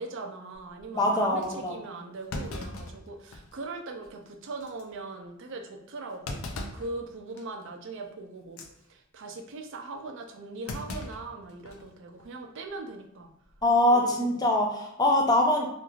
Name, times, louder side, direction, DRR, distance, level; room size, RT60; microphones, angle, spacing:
voice 1, 0.0-6.4 6.7-8.6 8.9-13.3 13.9-14.3, right 3 dB, 65° right, 4 dB, 0.4 m, -40 dB
Thump thud, 0.5-0.8 1.4-1.5 2.3-3.6 4.0-4.1 4.6-4.8 6.2-6.9 7.4-7.6 8.4-8.7 10.7-11.9 12.2-12.3 13.4-13.8, left 2 dB, 75° left, 0.4 m, -38 dB
voice 2, 0.9-1.8 13.6-15.7, left 1 dB, 20° left, 0 dB, 0.5 m, -23 dB
3.0 x 2.5 x 2.3 m, 0.81 s
head